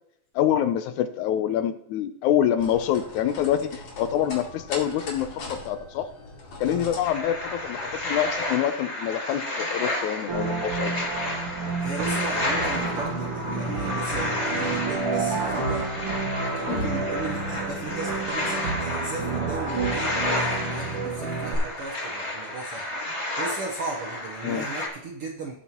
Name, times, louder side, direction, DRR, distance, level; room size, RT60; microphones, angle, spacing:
voice 1, 0.3-6.1 6.6-10.9 16.7-16.9 24.4-24.7, left 10 dB, 80° left, 10 dB, 1.8 m, -26 dB
sound 1, 2.6-8.4, left 2 dB, 65° left, 3.5 m, -41 dB
sound 2, 7.0-24.9, left 1 dB, 20° left, 2.2 m, -32 dB
sound 3, 10.3-21.6, right 3 dB, 50° right, 2.4 m, -29 dB
voice 2, 11.8-20.4 20.7-22.9 23.4-25.6, right 3 dB, 70° right, 0 dB, 1.3 m, -36 dB
16.5 x 7.1 x 2.9 m, 0.76 s
omnidirectional pair, 3.7 m